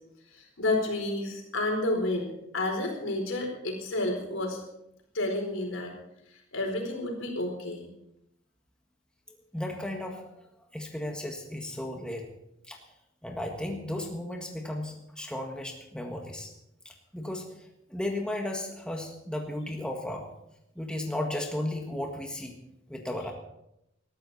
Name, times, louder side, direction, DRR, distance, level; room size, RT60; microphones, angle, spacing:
voice 1, 0.3-2.3 2.5-4.6 5.1-5.9 6.5-7.9, left 2 dB, 75° left, 2 dB, 4.7 m, -30 dB
voice 2, 9.3-10.3 10.7-12.3 12.7-12.8 13.2-16.5 16.8-17.5 17.9-20.3 20.7-22.6 22.9-23.3, left 1 dB, 5° left, 1 dB, 1.6 m, -35 dB
20.5 x 13.5 x 4.3 m, 0.83 s
head